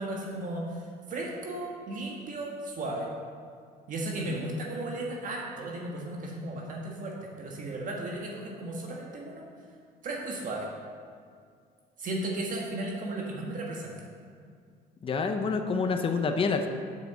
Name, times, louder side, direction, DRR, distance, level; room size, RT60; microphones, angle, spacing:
voice 1, 0.0-3.1 3.9-9.4 10.0-10.7 12.0-14.0, right 1 dB, 50° right, -1 dB, 1.5 m, -35 dB
voice 2, 15.0-16.7, left 4 dB, 30° left, 6 dB, 0.7 m, -27 dB
7.3 x 5.9 x 6.9 m, 2.2 s
cardioid pair, 110°, 17 cm